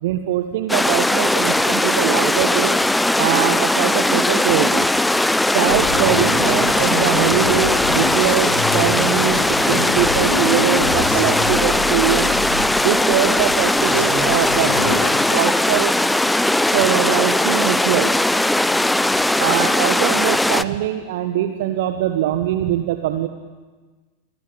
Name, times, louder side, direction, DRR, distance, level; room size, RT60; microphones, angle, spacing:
voice 1, 0.0-2.8 3.2-4.9 5.5-12.3 12.8-15.0 15.3-15.9 16.7-18.2 19.4-23.3, right 12 dB, 55° right, 8 dB, 1.6 m, -22 dB
sound 1, 0.7-20.6, left 1 dB, 5° left, 0.8 m, -19 dB
sound 2, 5.6-15.1, left 4 dB, 70° left, 4.8 m, -27 dB
29.5 x 23.0 x 8.8 m, 1.3 s
figure-of-eight pair, 90°, 0 cm